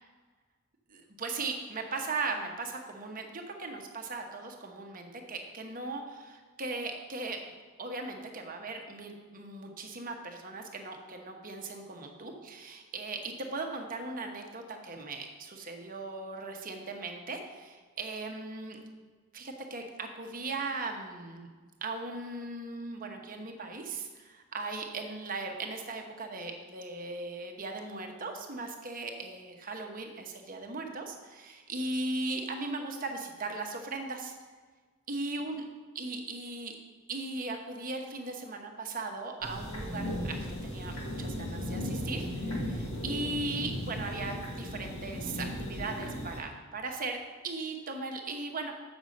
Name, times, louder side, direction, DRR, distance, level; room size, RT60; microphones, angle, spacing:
voice 1, 0.9-7.4 7.8-18.8 19.3-21.5 21.8-34.3 35.1-35.6 35.9-36.8 37.1-47.2 47.4-48.7, right 3 dB, 40° right, 3 dB, 1.0 m, -38 dB
sound 1, 39.4-46.4, left 1 dB, 75° left, 1.8 m, -36 dB
8.1 x 6.2 x 5.2 m, 1.4 s
head